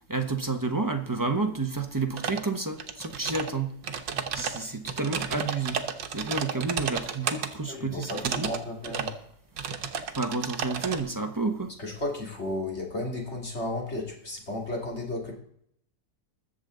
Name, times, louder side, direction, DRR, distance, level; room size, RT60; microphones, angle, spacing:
voice 1, 0.1-3.7 4.3-5.8 6.1-8.5 10.1-11.7, right 3 dB, 15° right, 0.8 m, -30 dB
sound 1, 2.2-2.5 2.8-3.5 3.8-7.5 8.0-8.6 8.8-9.2 9.6-11.0, right 7 dB, 80° right, 1.7 m, -32 dB
voice 2, 7.7-9.1 11.8-15.3, left 2 dB, 35° left, 3.1 m, -33 dB
21.0 x 7.1 x 3.9 m
omnidirectional pair, 1.9 m